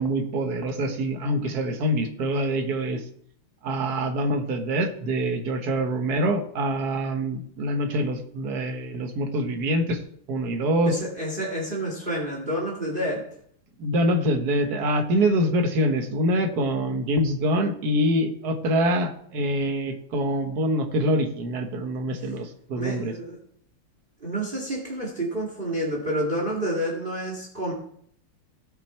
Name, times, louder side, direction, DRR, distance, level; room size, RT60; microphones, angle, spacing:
voice 1, 0.0-3.0 3.6-10.0 10.3-11.0 13.8-23.1, equal, 50° right, 4 dB, 1.8 m, -25 dB
voice 2, 10.9-13.2 22.2-22.4 22.7-23.4 24.2-27.7, right 1 dB, 25° right, -1 dB, 2.4 m, -29 dB
18.0 x 6.5 x 4.4 m, 0.65 s
omnidirectional pair, 2.3 m